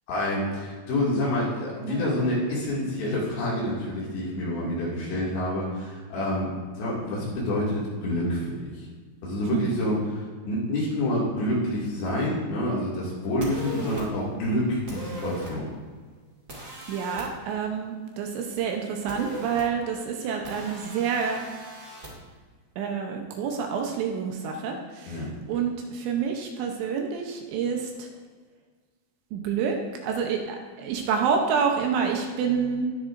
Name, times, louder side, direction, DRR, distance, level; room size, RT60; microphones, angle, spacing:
voice 1, 0.1-8.9 9.2-15.7 25.1-25.3, left 1 dB, 65° left, -5 dB, 4.5 m, -28 dB
sound 1, 13.4-14.0 14.9-15.5 16.5-17.3 19.1-19.6 20.4-22.1, right 1 dB, 45° right, 1.0 m, -38 dB
voice 2, 16.9-21.4 22.8-25.2 25.5-28.1 29.3-29.8 30.0-33.0, right 6 dB, 75° right, 2 dB, 3.0 m, -28 dB
19.5 x 6.8 x 2.6 m, 1.5 s
omnidirectional pair, 5.5 m